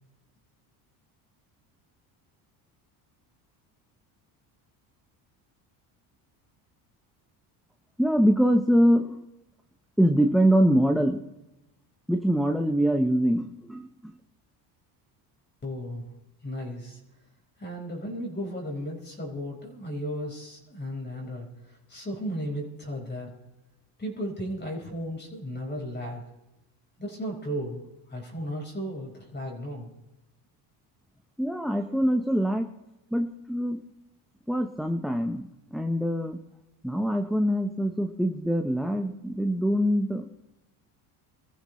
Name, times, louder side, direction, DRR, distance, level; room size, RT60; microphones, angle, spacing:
voice 1, 8.0-9.2 10.0-11.2 12.1-14.1 31.4-32.7 33.1-33.8 34.5-36.4 36.8-40.3, equal, ahead, 4 dB, 0.9 m, -24 dB
voice 2, 15.6-16.1 16.4-17.0 17.6-23.3 24.0-26.2 27.0-29.9, equal, 25° left, -1 dB, 4.8 m, -35 dB
24.5 x 14.0 x 3.2 m, 0.96 s
supercardioid pair, 100°, 45 cm